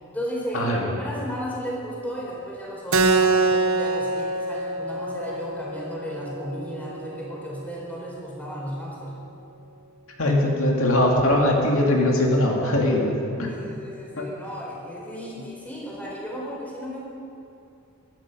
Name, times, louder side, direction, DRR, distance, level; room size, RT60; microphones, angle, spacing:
voice 1, 0.1-9.2 13.4-17.0, equal, 5° left, -4 dB, 4.0 m, -34 dB
Keyboard (musical), 2.9-8.0, right 3 dB, 70° right, 0.8 m, -25 dB
voice 2, 10.2-13.6 14.2-14.3, left 1 dB, 75° left, -1 dB, 2.3 m, -21 dB
22.5 x 12.0 x 5.3 m, 2.7 s
head